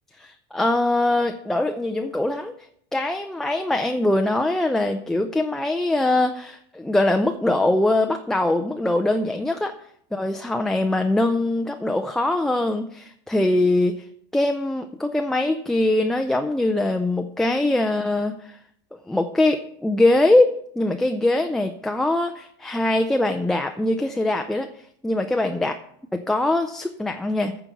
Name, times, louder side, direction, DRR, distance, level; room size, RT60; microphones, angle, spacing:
voice 1, 0.2-2.6 2.9-9.7 10.1-14.0 14.3-18.6 19.1-25.7 26.1-27.5, left 2 dB, 5° left, 5 dB, 0.4 m, -22 dB
9.1 x 4.5 x 7.1 m, 0.69 s
supercardioid pair, 130°, 13 cm